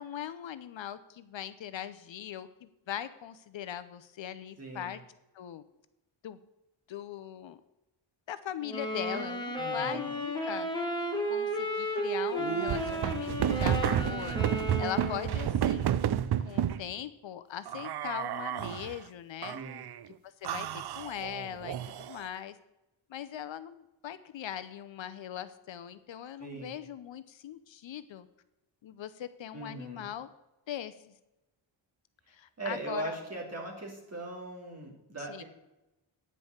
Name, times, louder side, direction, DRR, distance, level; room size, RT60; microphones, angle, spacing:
voice 1, 0.0-5.0 5.3-5.6 6.2-6.4 6.9-7.6 8.3-10.7 11.3-14.4 14.8-16.0 16.4-19.6 20.4-20.7 20.9-22.6 23.1-28.3 28.8-30.3 30.7-30.9 32.3-33.1 35.3-35.4, left 10 dB, 65° left, 12 dB, 0.7 m, -40 dB
voice 2, 4.6-5.0 9.5-10.1 19.5-19.9 26.4-26.7 29.5-30.1 32.6-35.4, right 2 dB, 30° right, -1 dB, 2.7 m, -39 dB
sound 1, 8.6-15.5, equal, 10° left, 1.7 m, -33 dB
sound 2, 12.4-16.8 17.7-19.0 19.4-20.0 20.4-22.3, right 10 dB, 55° right, 0.5 m, -31 dB
9.8 x 5.4 x 7.8 m, 0.95 s
wide cardioid pair, 160°, 49 cm